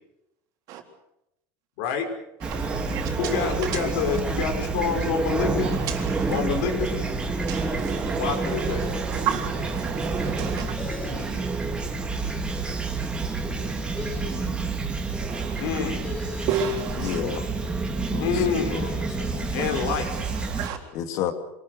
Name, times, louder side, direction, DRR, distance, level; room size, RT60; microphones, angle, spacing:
Fowl / Chirp tweet, 2.4-20.7, right 4 dB, 15° right, 2.8 m, -28 dB
voice 1, 2.4-4.2 5.6-6.5 7.5-10.7 15.2-15.9 16.5-17.2 19.6-20.8, right 8 dB, 55° right, 3.9 m, -33 dB
voice 2, 3.2-5.7 6.3-7.1 8.2-8.8 15.6-16.0 18.2-18.8 19.5-20.1, left 7 dB, 75° left, 5.4 m, -27 dB
sound 1, 10.8-11.4 14.0-14.6 16.0-16.5, left 2 dB, 15° left, 4.0 m, -37 dB
voice 3, 17.0-17.4 18.1-19.5 20.9-21.3, left 9 dB, 55° left, 2.6 m, -31 dB
27.0 x 20.5 x 6.7 m
cardioid pair, 145°, 7 cm